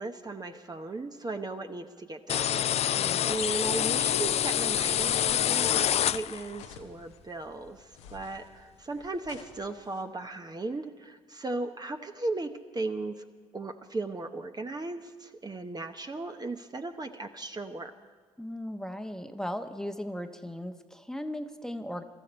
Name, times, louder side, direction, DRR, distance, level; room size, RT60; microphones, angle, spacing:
voice 1, 0.0-2.7 3.2-13.2 13.5-17.9, right 2 dB, 25° right, 6 dB, 1.1 m, -37 dB
sound 1, 2.3-6.6, left 10 dB, 45° left, 0.4 m, -27 dB
sound 2, 5.4-5.9 6.5-7.2 7.9-8.5 9.2-10.1, left 6 dB, 85° left, 1.0 m, -50 dB
voice 2, 18.4-22.0, equal, 5° left, 7 dB, 1.1 m, -37 dB
23.0 x 13.5 x 4.4 m, 1.5 s
hypercardioid pair, 45°, 15 cm